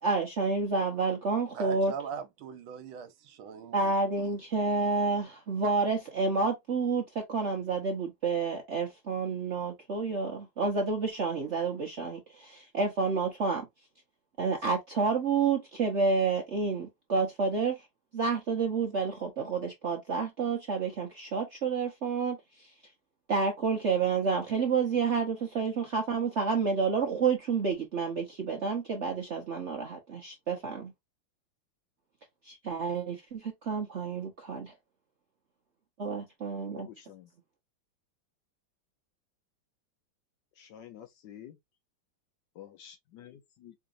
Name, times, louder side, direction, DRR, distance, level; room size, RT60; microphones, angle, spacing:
voice 1, 0.0-1.9 3.7-13.7 14.4-17.8 18.1-22.7 23.3-30.9 32.4-34.7 36.0-36.9, right 4 dB, 60° right, 0.7 m, -29 dB
voice 2, 1.5-4.3, right 7 dB, 80° right, 1.6 m, -41 dB
voice 3, 36.7-37.3 40.6-41.5 42.6-43.7, left 10 dB, 70° left, 1.1 m, -49 dB
4.9 x 2.8 x 2.5 m
omnidirectional pair, 2.3 m